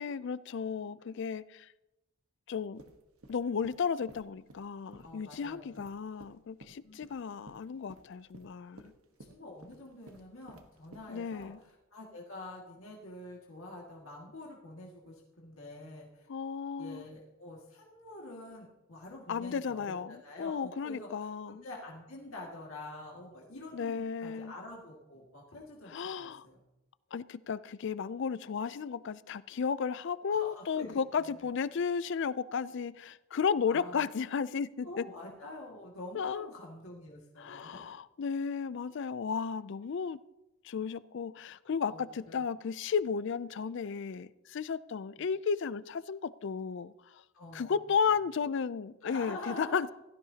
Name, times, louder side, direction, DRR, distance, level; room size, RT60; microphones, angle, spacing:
voice 1, 0.0-1.4 2.5-2.8 3.3-8.9 11.1-11.6 16.3-17.0 19.3-21.6 23.7-24.5 25.9-26.4 27.1-34.9 36.1-36.5 37.4-40.2 40.7-46.9 47.5-49.9, left 6 dB, 55° left, 18 dB, 0.4 m, -34 dB
sound 1, 2.8-11.7, right 2 dB, 85° right, 1.3 m, -55 dB
voice 2, 5.0-5.9 6.8-7.0 9.3-16.3 16.8-26.6 30.3-31.5 33.7-34.1 34.8-37.9 41.8-42.4 45.2-45.3 47.3-48.0 49.0-49.9, left 2 dB, 70° left, -3 dB, 2.0 m, -47 dB
16.5 x 13.0 x 2.8 m, 0.95 s
head